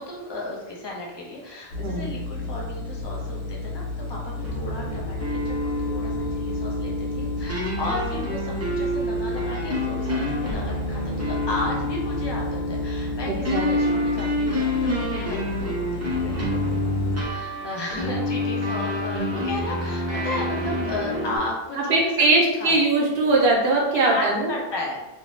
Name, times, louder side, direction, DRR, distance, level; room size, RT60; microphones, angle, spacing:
voice 1, 0.0-17.0 17.3-22.1 22.4-22.7 23.9-25.0, left 2 dB, 35° left, -3 dB, 0.5 m, -34 dB
sound 1, 1.7-17.2, left 2 dB, 85° left, 0.8 m, -33 dB
sound 2, 4.4-21.4, left 1 dB, 25° right, 0.3 m, -27 dB
voice 2, 13.3-13.7 21.9-24.5, right 2 dB, 80° right, -2 dB, 0.8 m, -21 dB
2.5 x 2.0 x 3.1 m, 1.1 s
omnidirectional pair, 1.0 m